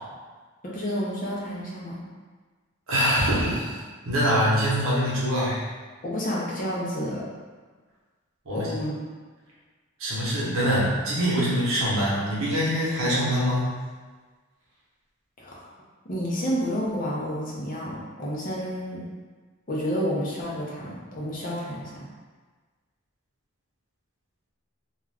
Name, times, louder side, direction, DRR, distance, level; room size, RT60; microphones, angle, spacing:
voice 1, 0.6-2.0 6.0-7.2 8.5-9.0 15.4-15.7 16.1-19.1 19.7-22.1, equal, 40° left, -5 dB, 0.6 m, -30 dB
voice 2, 2.9-3.7 4.1-5.6 8.5-8.7 10.0-13.7, equal, 85° right, -7 dB, 0.9 m, -24 dB
2.3 x 2.3 x 3.3 m, 1.4 s
head